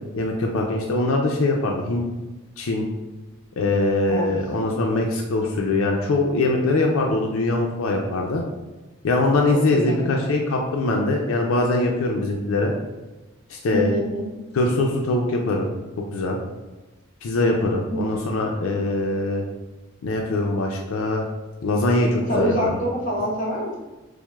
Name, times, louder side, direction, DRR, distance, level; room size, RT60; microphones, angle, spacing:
voice 1, 0.1-2.0 2.6-2.9 3.6-8.4 9.0-12.7 13.5-14.0 14.5-15.7 16.0-16.4 17.2-19.4 20.0-21.2 21.6-22.6, left 2 dB, 80° left, 0 dB, 0.4 m, -22 dB
voice 2, 9.7-10.1 13.7-14.2 17.7-18.0 22.3-23.8, equal, 40° left, -4 dB, 0.9 m, -25 dB
5.9 x 2.0 x 2.2 m, 1.1 s
head